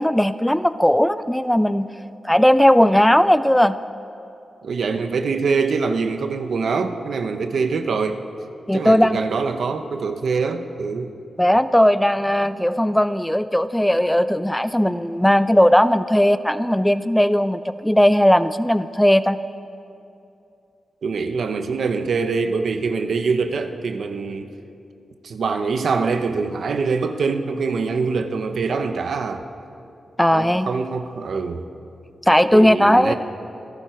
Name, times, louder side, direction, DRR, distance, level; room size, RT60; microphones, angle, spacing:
voice 1, 0.0-1.9 2.2-3.7 8.7-9.2 11.4-19.4 30.2-30.7 32.3-33.1, equal, 5° left, 13 dB, 0.4 m, -17 dB
voice 2, 4.6-8.2 8.7-11.1 21.0-24.5 25.2-29.4 30.3-31.6 32.5-33.2, right 4 dB, 70° right, 8 dB, 1.0 m, -24 dB
27.5 x 11.5 x 4.6 m, 2.7 s
wide cardioid pair, 115°, 0 cm